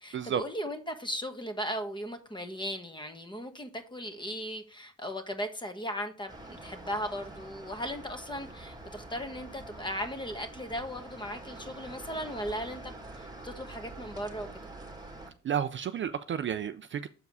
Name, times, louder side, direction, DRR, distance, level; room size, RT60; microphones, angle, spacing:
voice 1, 0.0-14.5, equal, 15° left, 1.2 m, -37 dB
sound 1, 6.3-15.3, right 2 dB, 15° right, 1.6 m, -46 dB
voice 2, 15.4-17.1, right 8 dB, 40° right, 0.4 m, -31 dB
6.9 x 4.7 x 4.8 m
cardioid pair, 90°, 30 cm